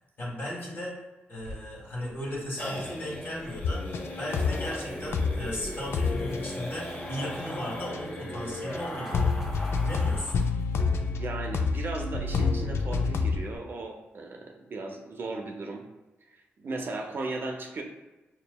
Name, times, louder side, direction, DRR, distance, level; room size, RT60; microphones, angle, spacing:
voice 1, 0.2-0.9 1.3-3.8 4.2-9.3 9.8-10.3, equal, 50° left, -3 dB, 1.5 m, -36 dB
sound 1, 1.4-10.5 10.8-10.9 11.2-11.3 11.6-12.0, left 1 dB, 35° left, 1.1 m, -38 dB
sound 2, 3.6-4.8 5.1-5.6 5.9-8.4 8.7-8.8 9.1-13.6, left 4 dB, 70° left, 0.4 m, -29 dB
sound 3, 5.9-10.7, equal, 5° right, 0.6 m, -50 dB
voice 2, 11.1-15.9 16.6-17.8, right 3 dB, 55° right, 2 dB, 0.6 m, -36 dB
5.0 x 2.8 x 2.2 m, 1.1 s
cardioid pair, 70°, 4 cm